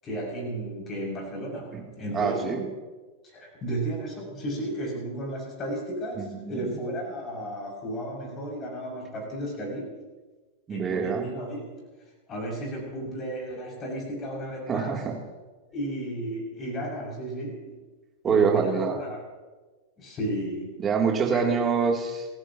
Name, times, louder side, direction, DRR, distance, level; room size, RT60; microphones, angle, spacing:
voice 1, 0.0-2.6 3.2-10.1 10.7-11.7 12.3-15.0 15.7-17.8 18.2-19.2 20.0-20.8 21.3-21.6, right 1 dB, 25° left, -1 dB, 6.9 m, -33 dB
voice 2, 2.1-2.6 6.2-6.7 10.7-11.3 14.7-15.1 18.2-18.9 20.8-22.3, right 6 dB, 20° right, 0 dB, 3.2 m, -25 dB
29.0 x 15.0 x 3.1 m, 1.3 s
figure-of-eight pair, 90°, 0 cm